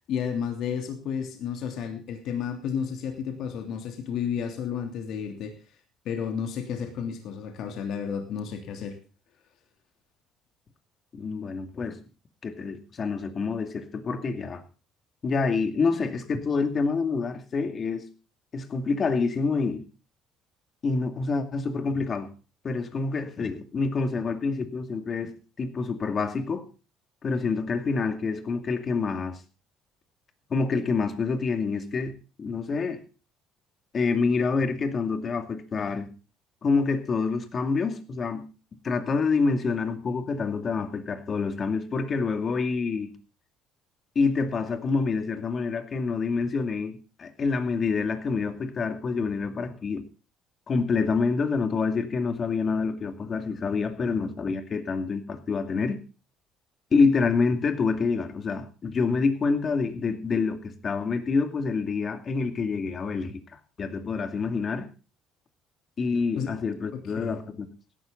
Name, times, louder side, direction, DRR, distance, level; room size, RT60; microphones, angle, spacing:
voice 1, 0.1-5.5 6.0-9.0 66.4-66.5 67.2-67.4, left 7 dB, 65° left, 3.0 m, -32 dB
voice 2, 11.1-12.0 12.4-14.6 15.2-18.1 18.5-19.8 20.8-22.3 22.6-26.6 27.2-29.4 30.5-33.0 33.9-36.1 36.6-38.5 38.8-43.1 44.2-50.0 50.7-56.0 56.9-63.4 63.8-64.9 66.0-67.7, left 4 dB, 40° left, 2.4 m, -27 dB
16.5 x 12.5 x 3.9 m
cardioid pair, 105°, 0 cm